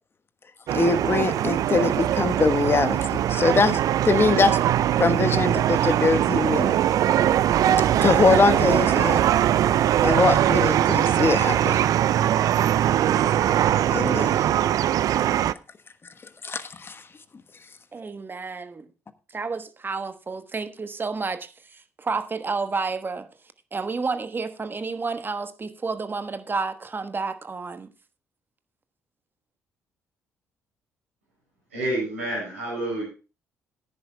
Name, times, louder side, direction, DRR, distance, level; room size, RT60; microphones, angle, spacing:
voice 1, 0.7-4.6 5.0-6.8 8.0-9.3 10.0-11.8 13.9-14.4 16.4-17.0, left 4 dB, 35° left, 1.3 m, -22 dB
sound 1, 0.7-15.5, right 11 dB, 55° right, 0.4 m, -21 dB
voice 2, 17.9-18.9 19.3-23.3 23.7-27.9, right 4 dB, 30° right, 1.2 m, -30 dB
voice 3, 31.7-33.0, right 1 dB, 90° right, 7.3 m, -28 dB
18.0 x 10.0 x 2.3 m
hypercardioid pair, 50°, 7 cm